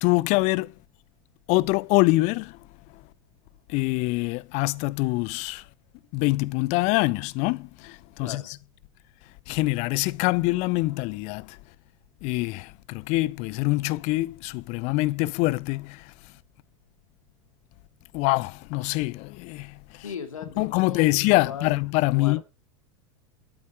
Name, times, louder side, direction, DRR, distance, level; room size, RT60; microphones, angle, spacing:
voice 1, 0.0-0.7 1.5-2.6 3.7-5.6 6.1-8.4 9.5-11.6 12.2-16.1 18.1-20.0 20.6-22.4, left 22 dB, 40° left, 0.6 m, -25 dB
voice 2, 8.2-8.6 20.0-21.8 22.1-22.4, left 6 dB, 75° left, 2.6 m, -38 dB
13.0 x 7.9 x 6.0 m
figure-of-eight pair, 90°, 18 cm